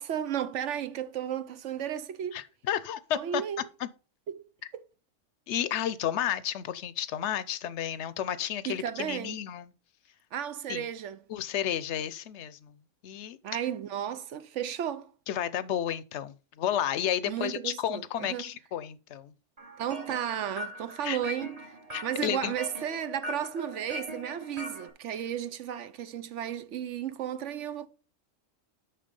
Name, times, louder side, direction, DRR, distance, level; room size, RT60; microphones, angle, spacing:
voice 1, 0.0-2.4 3.1-3.6 4.3-4.5 8.6-9.4 10.3-11.2 13.4-15.1 17.3-18.5 19.8-21.7 22.0-27.9, right 9 dB, 70° right, 1.0 m, -34 dB
voice 2, 2.3-3.4 3.8-3.9 5.5-9.7 10.7-10.8 11.3-12.8 13.0-13.4 15.3-19.3 21.0-21.2 21.9-22.5, left 10 dB, 70° left, 0.9 m, -32 dB
sound 1, 19.6-24.9, left 1 dB, 30° right, 1.2 m, -41 dB
6.7 x 5.9 x 5.2 m
omnidirectional pair, 1.3 m